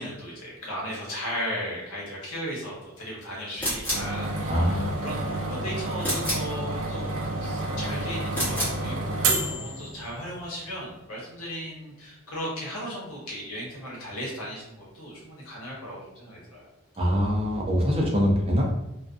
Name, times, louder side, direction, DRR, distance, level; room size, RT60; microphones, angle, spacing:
voice 1, 0.0-5.2 5.5-7.1 7.4-16.7, equal, 90° left, -4 dB, 1.0 m, -36 dB
sound 1, 3.6-4.1 6.0-6.5 8.3-8.8, equal, 10° left, 0.8 m, -29 dB
sound 2, 3.9-10.4, right 2 dB, 85° right, 0.4 m, -30 dB
voice 2, 4.5-5.3 17.0-18.6, equal, 25° right, -2 dB, 0.4 m, -24 dB
2.4 x 2.2 x 2.4 m, 0.89 s
head